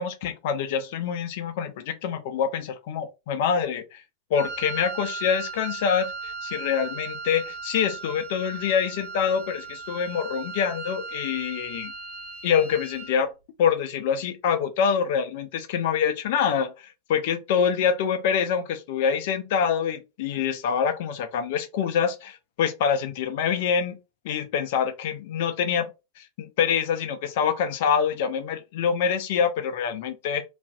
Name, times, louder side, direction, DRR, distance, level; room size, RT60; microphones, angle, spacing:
voice 1, 0.0-4.0 4.3-11.9 12.4-13.3 13.6-24.0 24.2-25.9 26.2-30.4, left 7 dB, 50° left, 0.5 m, -25 dB
Wind instrument woodwind instrument, 4.3-13.2, right 4 dB, 60° right, 0.9 m, -37 dB
2.4 x 2.3 x 2.2 m
figure-of-eight pair, 90°, 0 cm